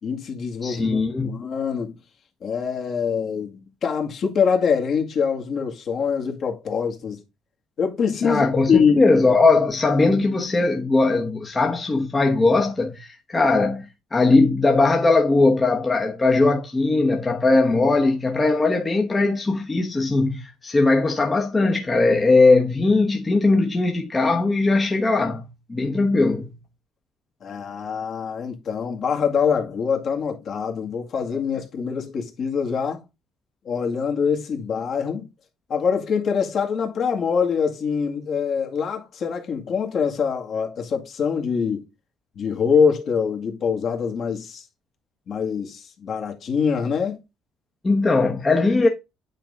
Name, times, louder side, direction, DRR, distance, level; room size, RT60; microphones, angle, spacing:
voice 1, 0.0-2.0 2.4-7.2 7.8-9.0 27.4-33.0 33.7-35.3 35.7-41.8 42.4-44.6 45.3-47.2, left 6 dB, 50° left, 2.0 m, -24 dB
voice 2, 0.6-1.3 8.2-26.6 47.8-48.9, left 3 dB, 20° left, 1.1 m, -19 dB
8.9 x 4.0 x 3.7 m
cardioid pair, 110°, 0 cm